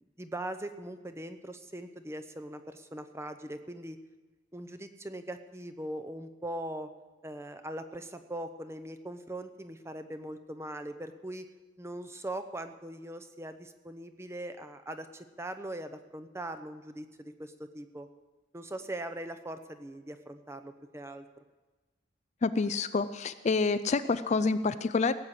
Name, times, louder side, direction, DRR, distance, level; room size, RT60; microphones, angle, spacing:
voice 1, 0.2-4.0 4.5-6.9 7.2-11.5 11.8-18.1 18.5-21.2, right 1 dB, 15° right, 8 dB, 0.8 m, -41 dB
voice 2, 22.4-25.1, left 4 dB, 35° left, 12 dB, 0.4 m, -28 dB
17.5 x 7.4 x 8.2 m, 1.2 s
head